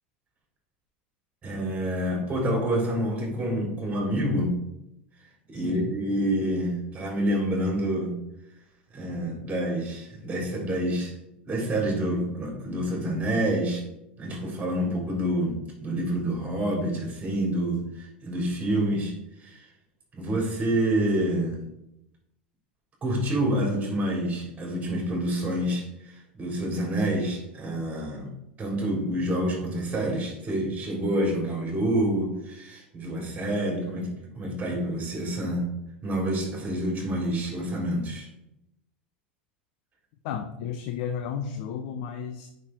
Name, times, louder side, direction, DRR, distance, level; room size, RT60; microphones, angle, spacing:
voice 1, 1.4-4.5 5.5-8.1 8.9-11.2 11.5-13.8 14.2-19.7 20.1-21.6 23.0-28.3 28.6-34.1 34.3-35.7 36.0-38.3, right 1 dB, 25° right, -2 dB, 3.7 m, -27 dB
voice 2, 5.5-5.9 40.2-42.5, left 8 dB, 60° left, 6 dB, 0.9 m, -33 dB
8.5 x 5.8 x 4.6 m, 0.84 s
hypercardioid pair, 85°, 6 cm